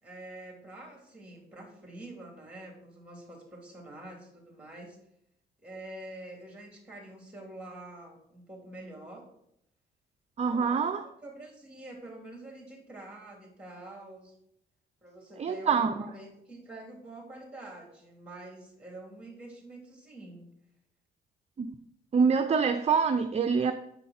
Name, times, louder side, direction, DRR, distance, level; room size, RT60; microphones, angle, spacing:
voice 1, 0.0-5.0 5.6-9.3 10.5-14.3 15.0-20.5, right 1 dB, 5° right, 1 dB, 3.0 m, -46 dB
voice 2, 10.4-11.0 15.4-16.0 21.6-21.7 22.1-23.7, right 5 dB, 35° right, 7 dB, 0.5 m, -25 dB
8.3 x 5.3 x 4.3 m, 0.77 s
cardioid pair, 90°, 20 cm